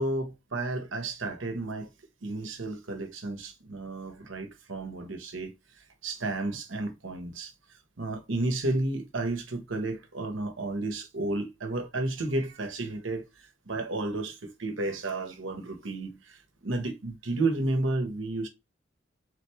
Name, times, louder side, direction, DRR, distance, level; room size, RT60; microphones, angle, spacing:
voice 1, 0.0-1.9 2.2-5.5 6.0-7.5 8.0-13.3 13.7-18.5, right 2 dB, 80° right, 1.1 m, -32 dB
3.7 x 3.5 x 3.2 m
head